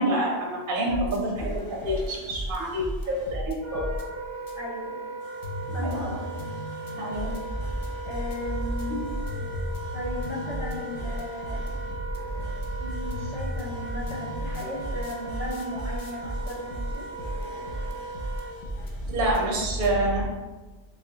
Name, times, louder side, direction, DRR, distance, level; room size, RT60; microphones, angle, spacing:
voice 1, 0.0-1.5 1.8-3.8 5.8-6.1 7.0-7.3 19.1-20.2, right 1 dB, 55° right, -3 dB, 0.7 m, -27 dB
sound 1, 0.9-4.0 4.5-4.6 5.2-20.2, equal, 55° left, 0.6 m, -34 dB
Wind instrument woodwind instrument, 3.6-18.5, right 3 dB, ahead, 0.8 m, -38 dB
voice 2, 4.6-5.0 5.7-6.1 8.0-9.1 9.9-11.6 12.8-17.1, left 1 dB, 25° left, -9 dB, 1.4 m, -35 dB
3.3 x 3.0 x 2.8 m, 1.2 s
omnidirectional pair, 1.3 m